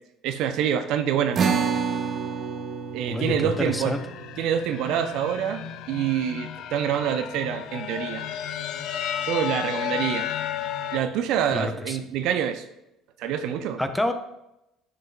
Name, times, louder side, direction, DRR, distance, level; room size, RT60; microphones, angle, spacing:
voice 1, 0.2-1.7 2.9-4.0 4.4-8.3 9.2-10.3 10.9-12.6 13.2-13.8, right 9 dB, 70° right, 9 dB, 0.5 m, -26 dB
sound 1, 1.3-8.0, right 6 dB, 45° right, 0.9 m, -31 dB
voice 2, 3.1-4.0 11.5-12.0 13.8-14.1, left 2 dB, 10° left, 8 dB, 0.8 m, -27 dB
sound 2, 3.2-11.0, left 10 dB, 65° left, 0.4 m, -33 dB
10.5 x 5.3 x 2.3 m, 0.88 s
hypercardioid pair, 60°, 0 cm